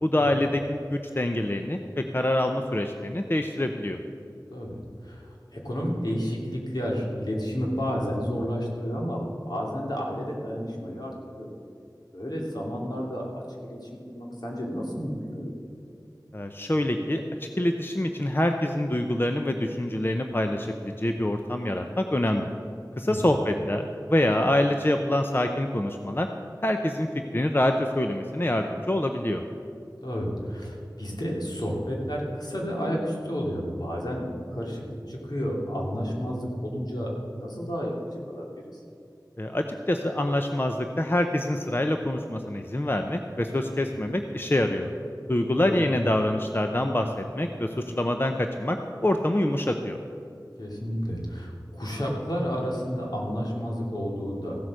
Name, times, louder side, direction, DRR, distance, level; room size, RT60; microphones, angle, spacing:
voice 1, 0.0-4.0 16.3-22.5 23.0-26.3 26.6-27.1 27.3-29.4 39.4-44.9 45.3-48.8 49.0-50.0, left 1 dB, 30° left, 5 dB, 0.7 m, -26 dB
voice 2, 4.5-9.2 9.5-11.5 12.1-13.4 13.7-15.5 23.0-23.2 30.0-34.8 35.1-37.9 38.3-38.4 45.5-45.8 50.6-54.6, equal, 70° left, -3 dB, 2.8 m, -31 dB
15.5 x 7.9 x 6.5 m, 2.5 s
wide cardioid pair, 40°, 7 cm